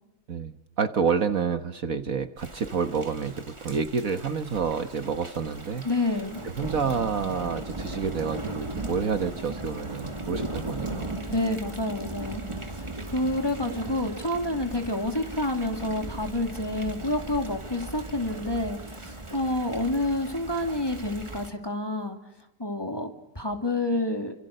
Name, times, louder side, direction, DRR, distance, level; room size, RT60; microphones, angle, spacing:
voice 1, 0.3-5.9 6.4-11.1, right 6 dB, 55° right, 9 dB, 1.5 m, -29 dB
Thunder / Rain, 2.4-21.5, right 2 dB, 20° right, 1.9 m, -38 dB
voice 2, 5.8-6.4 11.3-12.4 13.0-22.2 22.6-24.3, left 1 dB, 15° left, 4 dB, 2.6 m, -28 dB
28.5 x 26.5 x 6.7 m, 0.91 s
omnidirectional pair, 1.8 m